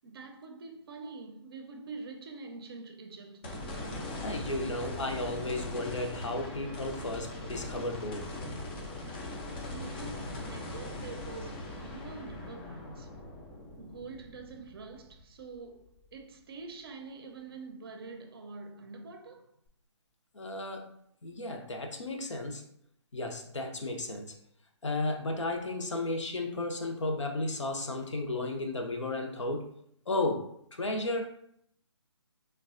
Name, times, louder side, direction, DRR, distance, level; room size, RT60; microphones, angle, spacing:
voice 1, 0.0-3.8 9.6-13.2 13.8-19.5, right 4 dB, 55° right, 0.5 m, -46 dB
sound 1, 3.4-15.8 16.2-16.3 19.7-19.8, left 1 dB, 20° left, 0.3 m, -40 dB
voice 2, 4.2-8.3 20.3-20.9 21.2-22.6 23.1-24.3 24.8-29.7 30.1-31.3, left 2 dB, 80° left, 0.6 m, -34 dB
3.9 x 2.2 x 2.4 m
figure-of-eight pair, 145°, 15 cm